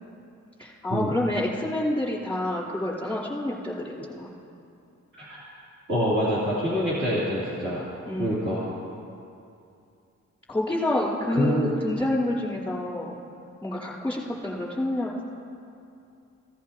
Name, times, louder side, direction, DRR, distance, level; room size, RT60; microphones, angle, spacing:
voice 1, 0.6-4.3 8.1-8.5 10.5-13.2 13.6-15.1, left 1 dB, 5° left, -8 dB, 3.5 m, -28 dB
voice 2, 5.9-7.8 8.2-8.6 11.3-11.7, equal, 40° right, -11 dB, 2.9 m, -26 dB
16.0 x 15.0 x 2.9 m, 2.6 s
wide cardioid pair, 125°, 30 cm